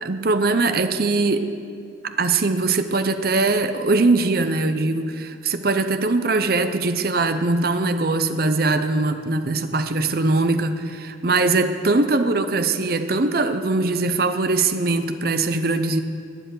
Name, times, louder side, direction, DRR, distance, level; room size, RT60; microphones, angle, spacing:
voice 1, 0.0-1.5 2.0-16.0, right 3 dB, 50° right, 9 dB, 0.7 m, -21 dB
13.0 x 9.0 x 9.3 m, 2.4 s
head